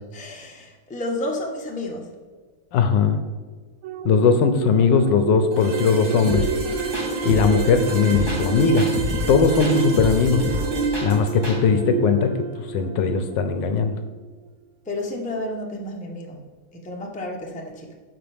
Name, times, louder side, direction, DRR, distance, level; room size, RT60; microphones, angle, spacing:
voice 1, 0.1-2.1 14.9-18.0, left 1 dB, 5° left, 0 dB, 0.7 m, -31 dB
voice 2, 2.7-3.2 4.0-6.5 7.2-8.9 9.3-10.5 11.0-13.9, left 6 dB, 75° left, 8 dB, 1.3 m, -19 dB
sound 1, 3.8-13.7 14.2-14.4, right 6 dB, 80° right, 1.4 m, -29 dB
sound 2, 5.5-13.3, right 2 dB, 60° right, 1.8 m, -32 dB
sound 3, 6.3-11.6, left 2 dB, 15° right, 1.8 m, -28 dB
10.0 x 6.5 x 3.4 m, 1.4 s
omnidirectional pair, 2.1 m